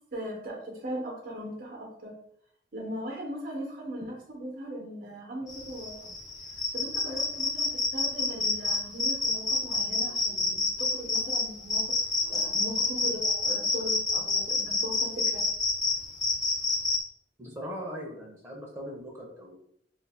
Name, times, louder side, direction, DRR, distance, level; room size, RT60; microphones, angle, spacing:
voice 1, 0.1-2.1 2.7-6.1 6.7-12.0 12.3-15.4, equal, 55° right, -1 dB, 0.9 m, -39 dB
sound 1, 5.5-17.0, left 3 dB, 25° left, 0.6 m, -28 dB
voice 2, 17.4-19.6, equal, 15° right, -2 dB, 0.7 m, -40 dB
2.6 x 2.5 x 4.2 m, 0.70 s
head